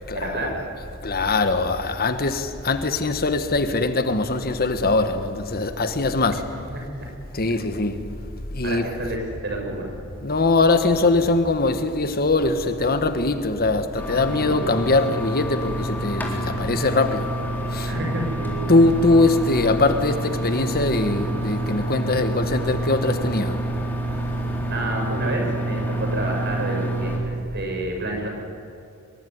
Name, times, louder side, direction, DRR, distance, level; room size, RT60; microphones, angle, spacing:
voice 1, 0.1-0.7 6.7-6.8 8.6-9.9 14.3-14.8 17.8-18.6 24.7-28.3, right 1 dB, 55° right, 6.9 m, -29 dB
voice 2, 1.0-6.5 7.3-8.0 8.5-8.9 10.2-17.3 17.7-17.9 18.7-23.6, left 2 dB, 45° left, 1.6 m, -21 dB
sound 1, 14.0-27.2, right 1 dB, 10° left, 4.1 m, -28 dB
24.5 x 22.5 x 9.6 m
head